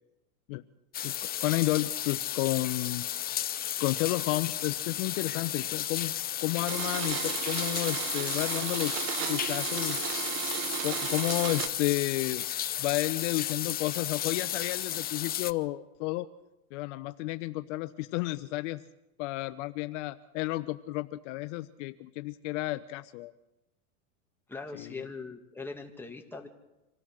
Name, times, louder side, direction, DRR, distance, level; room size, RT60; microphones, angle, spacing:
sound 1, 0.9-15.5, left 11 dB, 20° left, 0.6 m, -33 dB
voice 1, 1.0-3.0 3.8-6.1 6.4-10.0 10.8-12.4 12.8-16.3 16.7-18.8 19.2-23.3 24.7-25.1, left 19 dB, 55° left, 12 dB, 0.9 m, -32 dB
Domestic sounds home sounds, 6.7-11.7, right 13 dB, 40° right, 1.0 m, -34 dB
voice 2, 24.5-26.5, left 4 dB, 5° left, 2 dB, 2.3 m, -41 dB
26.0 x 17.0 x 6.5 m, 0.97 s
supercardioid pair, 125°, 43 cm